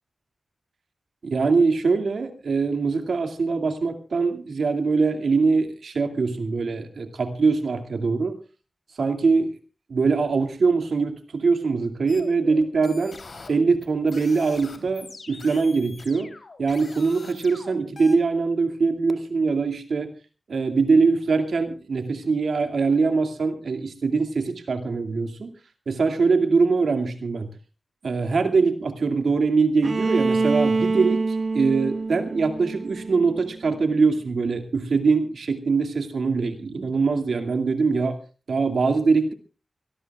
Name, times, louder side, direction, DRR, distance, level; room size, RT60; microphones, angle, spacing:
voice 1, 1.2-8.4 9.0-9.5 9.9-13.2 13.5-16.3 16.6-20.1 20.5-25.5 25.9-27.5 28.0-38.2 38.5-39.3, right 4 dB, 90° right, 6 dB, 2.4 m, -23 dB
sound 1, 12.1-18.2, left 3 dB, 55° left, 3.3 m, -44 dB
Bowed string instrument, 29.8-33.7, right 3 dB, 55° right, 1.2 m, -25 dB
25.0 x 18.0 x 2.4 m, 0.36 s
wide cardioid pair, 115°, 0 cm